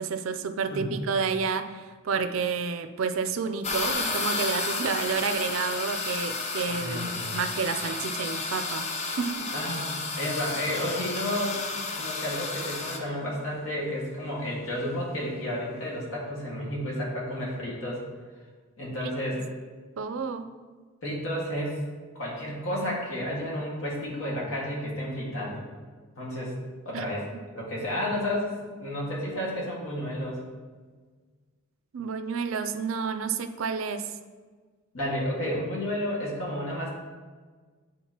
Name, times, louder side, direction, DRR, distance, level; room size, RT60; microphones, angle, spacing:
voice 1, 0.0-9.5 20.0-20.5 26.9-27.1 31.9-34.1, right 5 dB, 70° right, 9 dB, 0.4 m, -30 dB
voice 2, 0.7-1.0 6.7-7.3 9.5-11.6 11.9-18.0 18.8-19.4 21.0-21.8 22.2-25.7 26.2-26.5 26.9-27.3 27.5-30.4 34.9-36.9, equal, 75° left, -4 dB, 1.8 m, -31 dB
sound 1, 3.6-13.0, left 3 dB, 30° left, 0.6 m, -32 dB
9.1 x 3.9 x 2.9 m, 1.5 s
head